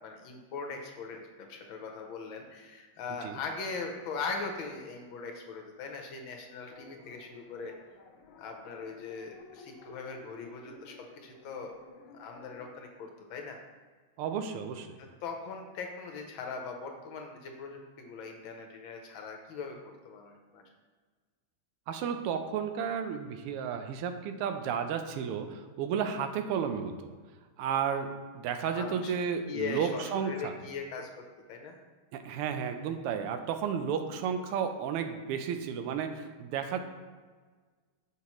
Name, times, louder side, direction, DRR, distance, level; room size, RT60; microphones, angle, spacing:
voice 1, 0.0-7.7 8.4-13.6 15.0-19.8 20.0-20.6 28.7-29.1 29.5-31.8, left 4 dB, 70° left, 3 dB, 1.4 m, -40 dB
sound 1, 6.7-12.7, left 6 dB, 85° left, 1.6 m, -53 dB
voice 2, 14.2-15.0 21.9-27.1 27.6-30.5 32.1-36.8, right 7 dB, 85° right, 7 dB, 1.5 m, -33 dB
6.0 x 5.6 x 3.0 m, 1.5 s
omnidirectional pair, 2.4 m